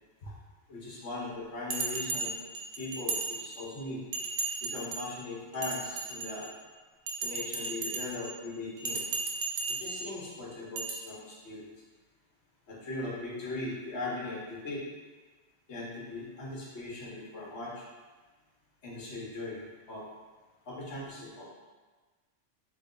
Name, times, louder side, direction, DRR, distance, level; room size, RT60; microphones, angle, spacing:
voice 1, 0.7-2.4 2.8-4.0 4.6-6.5 7.2-9.1 9.7-11.7 12.7-14.8 15.7-17.9 18.8-20.0 20.6-21.5, left 2 dB, 60° left, -5 dB, 1.2 m, -39 dB
Bell, 1.7-3.8 4.1-5.1 5.5-6.6 7.1-8.3 8.8-10.1 10.8-10.9, right 4 dB, 60° right, 0.7 m, -35 dB
3.2 x 2.9 x 3.7 m, 1.3 s
omnidirectional pair, 1.3 m